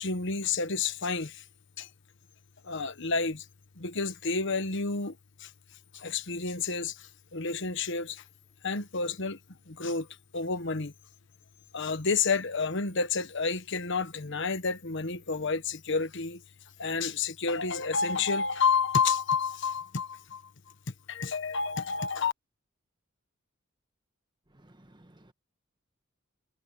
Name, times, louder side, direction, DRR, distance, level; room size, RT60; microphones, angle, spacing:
voice 1, 0.0-1.4 1.8-1.9 2.6-3.4 3.8-5.5 5.9-8.2 8.6-9.4 9.7-10.1 10.3-10.9 11.7-16.4 16.8-20.5 21.1-22.3, left 5 dB, 60° left, 1.3 m, -30 dB
voice 2, 24.5-25.3, right 1 dB, 20° right, 1.5 m, -57 dB
head